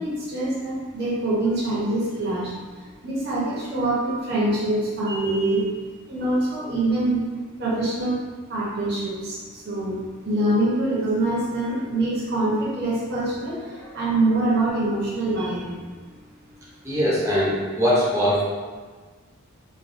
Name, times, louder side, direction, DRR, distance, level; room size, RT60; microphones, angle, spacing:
voice 1, 0.0-5.7 6.1-7.2 7.6-8.2 8.5-15.8, right 2 dB, 45° right, -8 dB, 0.8 m, -25 dB
voice 2, 16.8-18.4, equal, 15° right, -8 dB, 0.6 m, -21 dB
3.1 x 2.2 x 2.6 m, 1.5 s
head